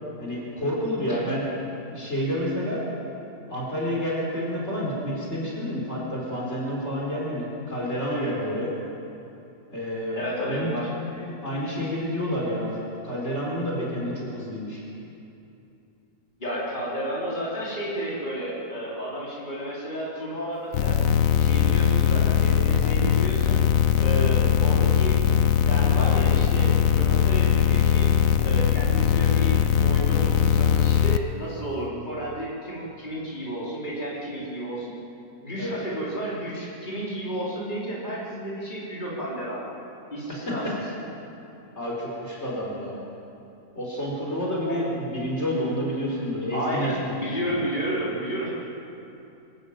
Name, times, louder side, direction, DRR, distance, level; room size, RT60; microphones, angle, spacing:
voice 1, 0.2-1.5 1.9-2.8 3.5-8.7 9.7-12.7 13.0-14.8 24.2-24.4 35.5-35.7 41.8-43.0 43.7-47.2 47.5-47.6, equal, 45° left, -4 dB, 4.6 m, -29 dB
voice 2, 10.1-10.9 16.4-20.9 21.4-23.6 24.0-25.2 25.7-28.1 28.4-34.9 35.4-39.7 40.1-40.7 44.7-44.8 46.5-48.5, equal, 30° left, -7 dB, 4.6 m, -32 dB
sound 1, 20.7-31.2, left 9 dB, 65° left, 1.2 m, -20 dB
25.5 x 13.5 x 8.8 m, 2.8 s
omnidirectional pair, 1.6 m